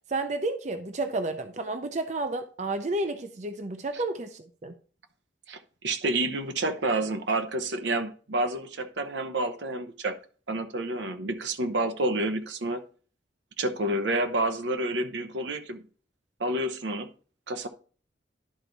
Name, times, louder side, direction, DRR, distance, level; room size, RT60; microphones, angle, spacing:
voice 1, 0.1-4.7, right 2 dB, 40° right, 0.5 m, -31 dB
voice 2, 5.5-10.2 10.5-12.8 13.6-15.8 16.4-17.1 17.5-17.7, right 2 dB, 80° right, 0.9 m, -29 dB
11.0 x 4.0 x 4.6 m
head